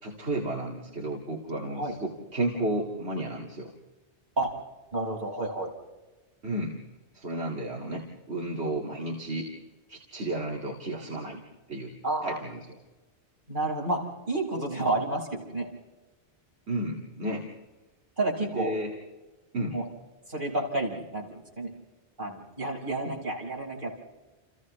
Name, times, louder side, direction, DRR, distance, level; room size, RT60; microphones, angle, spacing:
voice 1, 0.0-3.7 6.4-6.8 7.1-9.5 9.9-11.4 11.7-11.9 12.2-12.6 16.7-17.5 18.4-18.9 19.5-19.8 23.0-23.1, right 1 dB, 70° right, -2 dB, 2.6 m, -32 dB
voice 2, 4.9-5.7 12.0-12.4 13.5-15.7 18.2-18.7 19.7-19.8 20.3-21.7 22.2-24.0, right 2 dB, 45° right, -3 dB, 5.5 m, -30 dB
30.0 x 29.0 x 3.2 m, 1.1 s
omnidirectional pair, 1.2 m